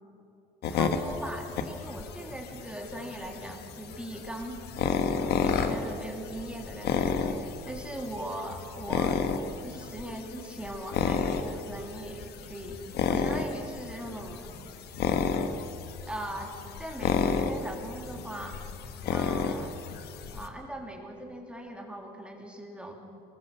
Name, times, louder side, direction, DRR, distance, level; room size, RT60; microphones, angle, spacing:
sound 1, 0.6-20.5, left 6 dB, 75° left, 1.6 m, -32 dB
voice 1, 0.7-9.2 9.6-14.5 16.0-18.6 19.1-19.7 20.3-22.9, right 1 dB, 5° right, 1 dB, 3.3 m, -40 dB
23.5 x 21.0 x 7.2 m, 2.8 s
cardioid pair, 110°, 17 cm